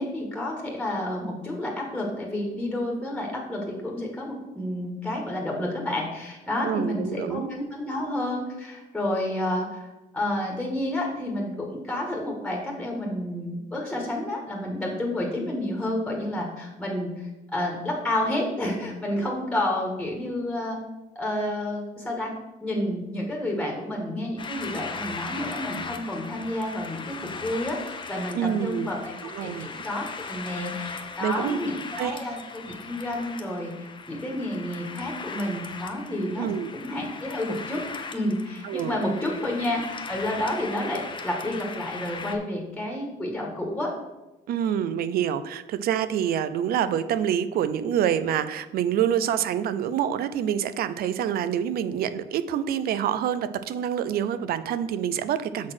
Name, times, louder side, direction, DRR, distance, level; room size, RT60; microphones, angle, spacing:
voice 1, 0.0-9.9 10.1-20.8 21.1-22.3 22.6-33.7 34.1-36.5 36.8-37.8 38.1-43.9, left 1 dB, 5° left, 0 dB, 1.5 m, -30 dB
voice 2, 6.6-7.5 28.3-28.9 29.3-29.7 31.2-31.6 32.0-32.2 36.4-36.7 38.6-39.0 39.3-39.4 44.5-55.7, right 9 dB, 65° right, 12 dB, 0.5 m, -26 dB
sound 1, 24.4-42.4, left 4 dB, 30° left, 0.7 m, -38 dB
6.2 x 4.2 x 6.0 m, 1.0 s
cardioid pair, 110°, 17 cm